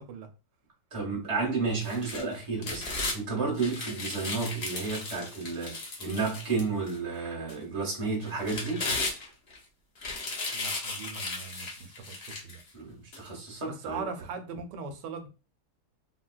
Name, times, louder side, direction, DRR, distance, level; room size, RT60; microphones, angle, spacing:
voice 1, 0.9-8.9 12.7-14.0, right 4 dB, 20° right, 1.0 m, -32 dB
sound 1, 1.8-3.2 3.6-7.0 7.5-7.6 8.2-9.6 10.0-12.6 13.1-13.2, left 3 dB, 50° left, 1.0 m, -35 dB
voice 2, 10.5-12.6 13.7-15.3, right 5 dB, 85° right, 1.2 m, -40 dB
3.8 x 2.2 x 2.3 m
omnidirectional pair, 1.8 m